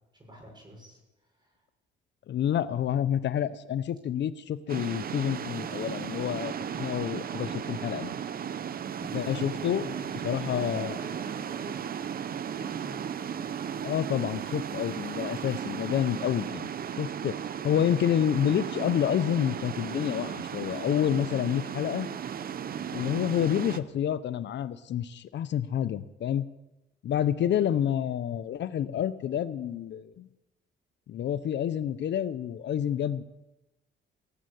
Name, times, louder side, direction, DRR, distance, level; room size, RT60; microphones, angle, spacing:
voice 1, 0.1-1.5 9.3-13.2, equal, 20° right, 1 dB, 6.1 m, -48 dB
voice 2, 2.3-8.1 9.0-9.8 10.2-11.0 13.8-17.4 17.6-22.1 22.9-26.4 27.0-30.3 31.1-33.2, left 10 dB, 65° left, 15 dB, 0.7 m, -28 dB
sound 1, 4.7-23.8, right 8 dB, 50° right, 0.7 m, -35 dB
17.5 x 7.6 x 8.3 m, 1.0 s
cardioid pair, 90°, 20 cm